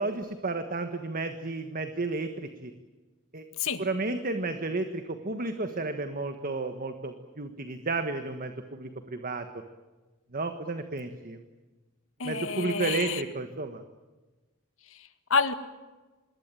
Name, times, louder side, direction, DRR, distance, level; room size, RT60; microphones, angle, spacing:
voice 1, 0.0-2.7 3.3-9.5 10.3-11.4 12.2-13.8, right 3 dB, 40° right, 7 dB, 1.5 m, -32 dB
voice 2, 12.2-13.2 14.9-15.5, left 5 dB, 65° left, 10 dB, 1.8 m, -29 dB
26.5 x 21.5 x 9.1 m, 1.2 s
head